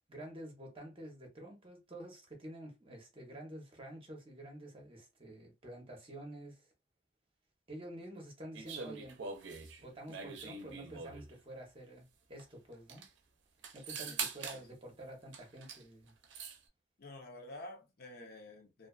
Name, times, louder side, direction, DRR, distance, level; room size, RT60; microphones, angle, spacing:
voice 1, 0.1-6.7 7.7-9.2 9.8-13.0 13.7-16.1, right 1 dB, 30° right, 0.8 m, -49 dB
sound 1, 8.5-11.3 12.4-12.5 12.7-13.1 13.6-14.6 15.3-15.8 16.1-16.6, right 5 dB, 80° right, 0.5 m, -43 dB
voice 2, 14.0-14.6 17.0-18.9, left 1 dB, 60° left, 0.7 m, -50 dB
2.4 x 2.4 x 2.3 m
head